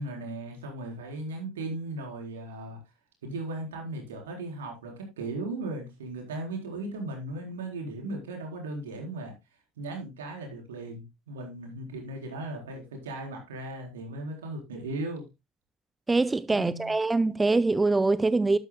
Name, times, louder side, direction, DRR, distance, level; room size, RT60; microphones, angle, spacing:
voice 1, 0.0-2.8 3.2-9.3 9.8-15.3 16.5-16.9, right 2 dB, 75° right, 4.0 m, -37 dB
voice 2, 16.1-18.6, right 3 dB, 15° right, 0.6 m, -24 dB
12.0 x 11.5 x 2.2 m
figure-of-eight pair, 65°, 0 cm